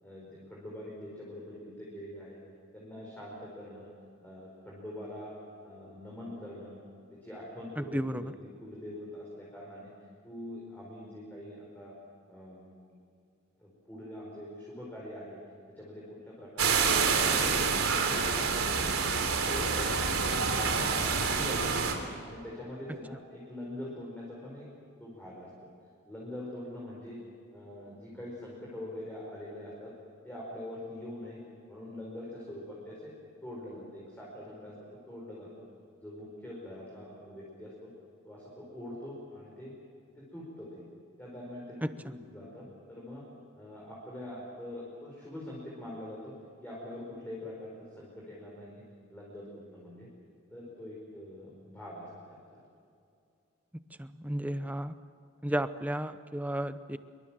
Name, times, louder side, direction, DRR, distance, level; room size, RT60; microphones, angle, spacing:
voice 1, 0.0-2.4 2.7-3.9 4.2-5.3 5.6-6.8 7.1-8.3 8.6-9.9 10.2-11.9 12.3-12.7 13.6-15.4 15.8-17.7 18.0-19.1 19.4-20.4 20.8-21.9 22.2-24.7 25.0-25.5 26.0-27.2 27.5-29.9 30.2-31.4 31.7-33.1 33.4-34.7 35.1-35.6 36.0-37.9 38.2-39.7 40.1-40.8 41.2-41.8 42.0-43.2 43.5-46.4 46.6-48.8 49.1-50.1 50.5-52.6 54.4-54.6, left 1 dB, 10° left, -5 dB, 4.8 m, -44 dB
voice 2, 7.8-8.3 41.8-42.1 54.0-54.9 55.4-57.0, right 1 dB, 5° right, 11 dB, 0.7 m, -33 dB
sound 1, 16.6-21.9, right 5 dB, 85° right, 3.4 m, -27 dB
26.5 x 24.0 x 7.5 m, 2.4 s
head